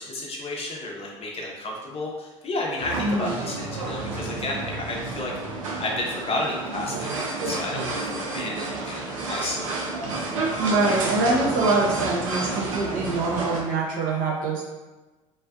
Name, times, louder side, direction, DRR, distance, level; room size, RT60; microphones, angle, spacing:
voice 1, 0.0-5.3 5.8-9.9, left 2 dB, 35° left, -2 dB, 0.7 m, -32 dB
sound 1, 2.8-13.6, right 3 dB, 90° right, 0.4 m, -30 dB
voice 2, 3.0-3.4 10.6-14.7, right 3 dB, 60° right, -2 dB, 0.8 m, -24 dB
2.5 x 2.3 x 2.4 m, 1.2 s
hypercardioid pair, 70°, 17 cm